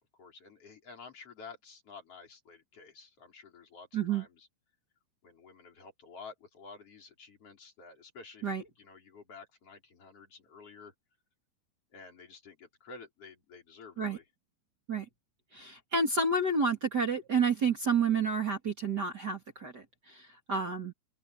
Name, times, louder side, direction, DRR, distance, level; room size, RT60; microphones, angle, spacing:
voice 1, 0.0-4.5 5.2-10.9 11.9-14.3, left 4 dB, 35° left, 5.3 m, -51 dB
voice 2, 3.9-4.2 8.4-8.6 14.0-14.2 14.9-15.1 15.5-20.9, right 4 dB, 30° right, 2.2 m, -30 dB
open air
omnidirectional pair, 4.5 m